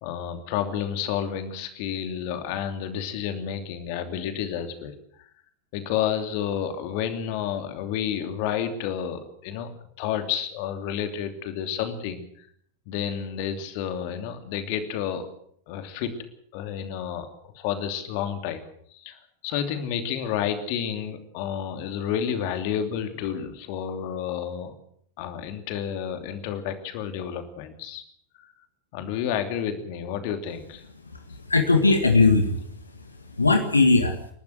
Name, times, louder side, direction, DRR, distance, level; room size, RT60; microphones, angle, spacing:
voice 1, 0.0-5.3 5.7-9.7 10.0-12.5 12.9-15.3 15.7-16.2 16.5-17.3 17.5-18.6 18.9-24.7 25.2-28.0 28.4-28.5 28.9-30.8, left 9 dB, 45° left, 8 dB, 2.9 m, -30 dB
voice 2, 31.3-32.6 33.4-34.2, left 3 dB, 80° left, 6 dB, 1.9 m, -19 dB
29.5 x 12.0 x 7.9 m, 0.64 s
figure-of-eight pair, 90°, 0 cm